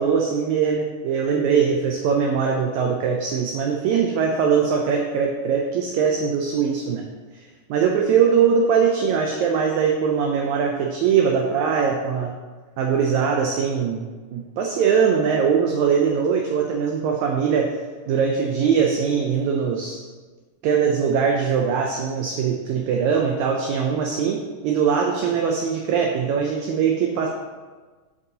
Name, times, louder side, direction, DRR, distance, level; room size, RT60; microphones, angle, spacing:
voice 1, 0.0-7.0 7.3-7.4 7.7-12.3 12.8-17.7 18.1-20.0 20.6-27.3, right 6 dB, 80° right, 1 dB, 1.7 m, -21 dB
8.0 x 5.3 x 2.8 m, 1.4 s
omnidirectional pair, 3.8 m